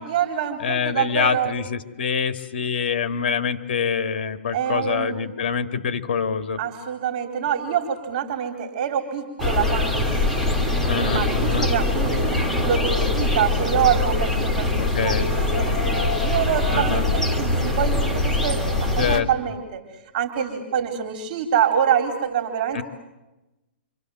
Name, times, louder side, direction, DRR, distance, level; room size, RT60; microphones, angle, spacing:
voice 1, 0.0-1.5 4.5-5.3 6.6-14.7 15.0-19.8 20.1-22.8, right 8 dB, 45° right, 6 dB, 4.0 m, -26 dB
voice 2, 0.6-6.6 10.8-11.7 13.0-13.1 14.7-15.3 16.7-17.1 19.0-19.3 22.7-22.8, left 6 dB, 60° left, 8 dB, 2.4 m, -25 dB
sound 1, 9.4-19.2, left 2 dB, 5° left, 3.0 m, -22 dB
28.0 x 27.0 x 7.8 m, 0.99 s
hypercardioid pair, 150°, 6 cm